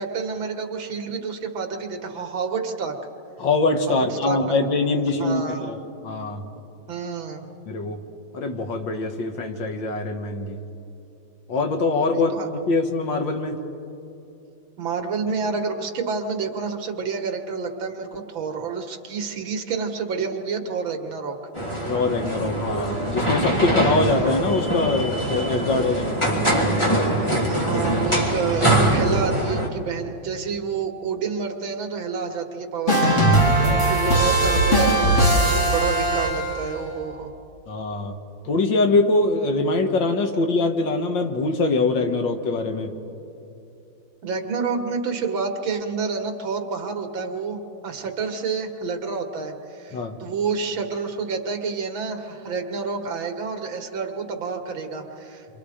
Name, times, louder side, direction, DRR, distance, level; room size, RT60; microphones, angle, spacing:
voice 1, 0.0-3.0 3.9-4.6 5.2-5.7 6.9-7.5 12.1-12.5 14.8-21.4 25.6-25.9 27.5-33.5 33.9-37.3 44.2-55.5, right 5 dB, 75° right, 4 dB, 2.3 m, -29 dB
voice 2, 3.4-6.4 7.7-8.0 8.3-10.6 11.5-13.6 21.8-26.2 33.6-33.9 37.7-38.2 38.5-42.9 49.9-50.2, left 3 dB, 70° left, 5 dB, 2.1 m, -23 dB
sound 1, 21.5-29.7, right 1 dB, 15° left, 2.7 m, -23 dB
sound 2, 32.9-36.7, right 1 dB, 35° left, 2.8 m, -19 dB
28.5 x 24.5 x 5.0 m, 2.8 s
omnidirectional pair, 2.2 m